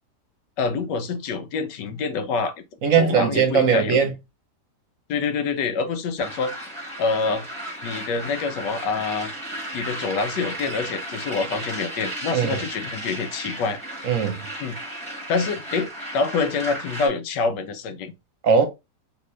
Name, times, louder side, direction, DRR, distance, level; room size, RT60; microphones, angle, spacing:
voice 1, 0.6-2.5 2.9-4.0 5.1-6.5 7.0-7.5 7.8-9.3 9.7-13.8 14.6-14.8 15.3-18.1, left 4 dB, 85° left, 1.3 m, -26 dB
voice 2, 2.8-4.1 12.3-12.6 14.0-14.4 18.4-18.6, right 6 dB, 55° right, 1.0 m, -19 dB
sound 1, 6.2-17.1, right 1 dB, 5° left, 1.4 m, -34 dB
3.3 x 2.9 x 3.1 m
omnidirectional pair, 1.8 m